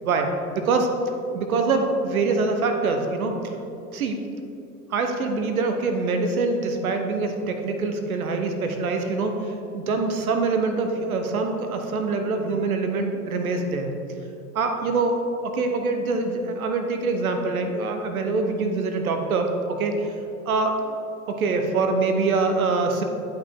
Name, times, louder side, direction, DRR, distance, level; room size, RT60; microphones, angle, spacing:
voice 1, 0.0-0.9 1.3-3.4 3.9-4.2 4.9-9.3 9.7-13.9 14.5-19.9 20.5-20.7 21.3-23.0, right 3 dB, 75° right, 5 dB, 1.0 m, -24 dB
11.0 x 5.6 x 3.5 m, 2.8 s
figure-of-eight pair, 75°, 43 cm